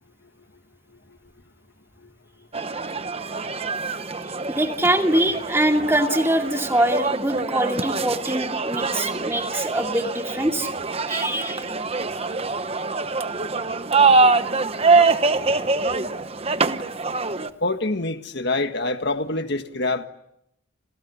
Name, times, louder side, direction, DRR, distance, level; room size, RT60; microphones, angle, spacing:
sound 1, 2.5-17.5, right 3 dB, 30° right, 1.0 m, -24 dB
voice 1, 4.5-10.7 11.1-11.6, right 1 dB, 10° right, 2.3 m, -23 dB
voice 2, 17.6-20.1, left 2 dB, 55° left, 1.7 m, -25 dB
30.0 x 27.5 x 7.1 m
head